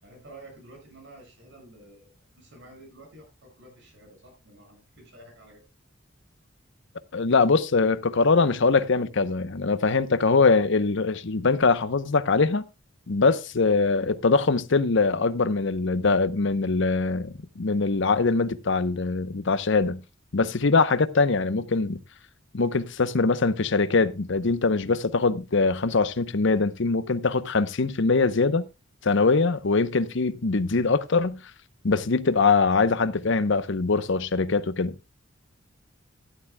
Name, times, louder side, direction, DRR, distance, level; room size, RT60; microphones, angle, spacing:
voice 1, 0.0-2.1 2.4-5.6, right 1 dB, 65° right, 6.8 m, -50 dB
voice 2, 7.1-12.7 13.1-20.0 20.3-22.0 22.5-28.6 29.0-31.4 31.8-35.0, left 4 dB, 65° left, 0.8 m, -22 dB
13.5 x 11.5 x 2.2 m
head